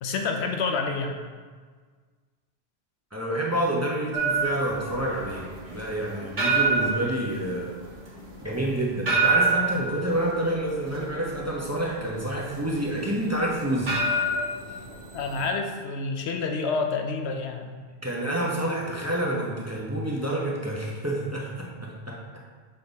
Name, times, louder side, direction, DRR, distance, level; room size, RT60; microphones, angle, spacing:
voice 1, 0.0-1.2 15.1-17.8, left 4 dB, 85° left, 4 dB, 0.9 m, -28 dB
voice 2, 3.1-7.7 8.4-14.0 18.0-22.2, right 1 dB, 15° right, -3 dB, 0.8 m, -28 dB
sound 1, 4.1-15.5, right 3 dB, 50° right, 1.4 m, -27 dB
6.6 x 3.9 x 4.0 m, 1.5 s
omnidirectional pair, 1.1 m